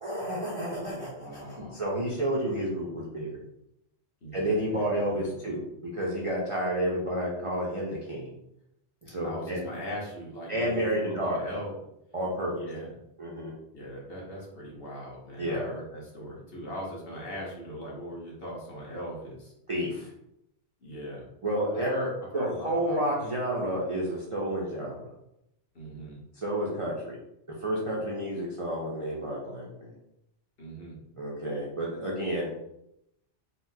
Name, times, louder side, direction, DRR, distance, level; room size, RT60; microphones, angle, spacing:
voice 1, 0.0-3.4 4.3-5.6 5.9-8.3 9.0-9.6 10.5-11.4 12.1-12.5 13.2-13.5 15.4-15.7 19.7-20.1 21.4-21.9 22.3-25.1 26.4-27.2 27.6-29.9 31.2-32.5, right 1 dB, 45° right, -5 dB, 0.4 m, -30 dB
voice 2, 1.2-1.8 4.2-5.0 9.2-11.7 12.5-12.9 13.7-19.5 20.8-21.3 21.7-23.0 25.7-26.2 30.6-31.0, equal, 55° left, -4 dB, 1.2 m, -39 dB
4.2 x 2.0 x 2.6 m, 0.82 s
omnidirectional pair, 1.2 m